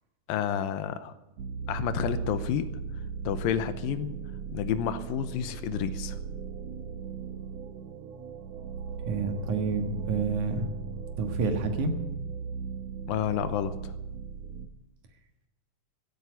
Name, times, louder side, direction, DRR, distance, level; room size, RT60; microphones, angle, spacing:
voice 1, 0.3-1.1 1.7-2.7 3.3-4.2 4.5-6.2 13.1-13.9, left 9 dB, 90° left, 12 dB, 2.6 m, -30 dB
sound 1, 1.4-14.7, right 6 dB, 80° right, 1.5 m, -37 dB
voice 2, 9.1-10.7 11.2-11.9, right 4 dB, 65° right, 5 dB, 2.8 m, -29 dB
15.5 x 8.5 x 9.5 m, 1.0 s
omnidirectional pair, 4.1 m